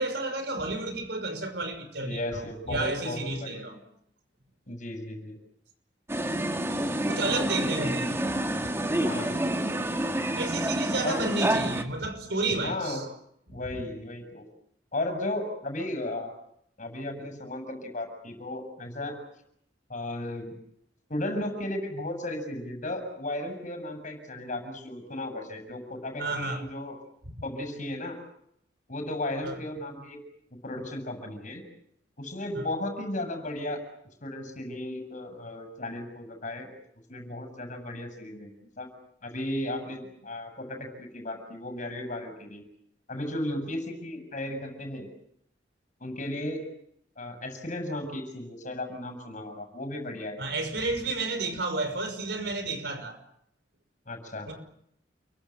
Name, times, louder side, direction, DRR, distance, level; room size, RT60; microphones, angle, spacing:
voice 1, 0.0-2.4 2.7-3.8 7.1-8.2 8.6-8.7 10.4-13.0 13.5-13.6 26.2-26.6 27.3-27.4 29.4-29.5 32.6-32.7 50.4-53.2 54.5-54.6, right 2 dB, 65° right, 5.7 m, -31 dB
voice 2, 2.0-3.8 4.7-5.4 9.0-9.4 11.0-11.2 12.4-13.0 13.5-14.5 14.9-16.3 16.8-19.2 19.9-20.5 21.1-26.9 27.4-28.2 28.9-30.2 30.6-31.6 32.2-33.8 34.2-36.7 37.1-38.5 38.8-38.9 39.2-42.7 43.1-45.1 46.0-46.7 47.2-50.4 54.1-54.5, left 1 dB, 45° left, 7.4 m, -35 dB
sound 1, 6.1-11.8, right 1 dB, 15° right, 2.0 m, -28 dB
29.5 x 23.5 x 7.4 m
head